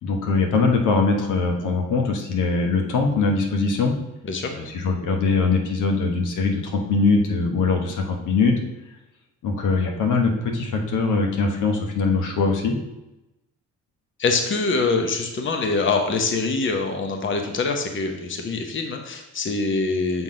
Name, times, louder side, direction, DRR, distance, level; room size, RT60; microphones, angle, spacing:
voice 1, 0.0-3.9 4.6-8.5 9.4-12.8, left 4 dB, 80° left, 2 dB, 1.1 m, -22 dB
voice 2, 14.2-20.2, left 3 dB, 40° left, 4 dB, 1.0 m, -24 dB
6.2 x 3.7 x 5.0 m, 0.95 s
cardioid pair, 90°, 30 cm